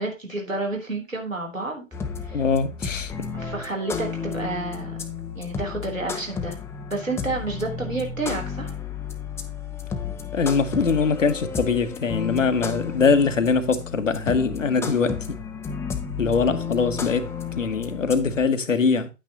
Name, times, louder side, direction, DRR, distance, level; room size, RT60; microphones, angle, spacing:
voice 1, 0.0-1.9 2.2-2.4 3.3-5.0 5.3-6.6 6.9-8.7, right 2 dB, 90° right, 3.7 m, -30 dB
sound 1, 1.9-18.4, left 6 dB, 5° left, 0.6 m, -32 dB
voice 2, 2.3-3.3 10.3-15.4 16.2-19.1, left 5 dB, 75° left, 1.4 m, -22 dB
9.8 x 8.9 x 3.0 m
figure-of-eight pair, 110°, 38 cm